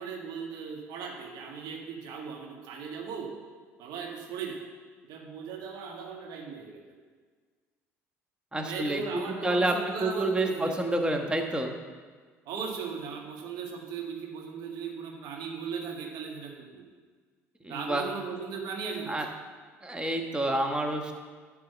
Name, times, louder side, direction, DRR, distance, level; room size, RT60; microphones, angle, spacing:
voice 1, 0.0-3.3 3.8-4.6 5.1-6.8 8.6-10.8 12.4-16.8 17.7-19.1, right 6 dB, 60° right, 0 dB, 1.7 m, -38 dB
voice 2, 8.5-11.7 17.6-18.0 19.1-19.3 19.8-21.1, right 1 dB, 10° right, 3 dB, 1.3 m, -28 dB
11.0 x 3.7 x 7.1 m, 1.5 s
hypercardioid pair, 60°, 8 cm